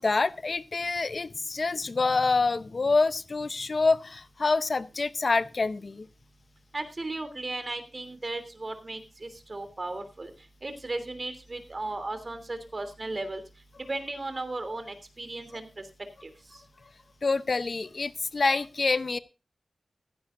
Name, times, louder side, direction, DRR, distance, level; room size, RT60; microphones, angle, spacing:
voice 1, 0.0-6.1 17.2-19.2, left 3 dB, 55° left, 13 dB, 0.7 m, -26 dB
voice 2, 6.7-10.3 10.6-13.4 13.8-15.7 16.2-16.3, right 2 dB, 40° right, 9 dB, 3.0 m, -35 dB
16.0 x 15.0 x 2.6 m, 0.28 s
wide cardioid pair, 75°, 0 cm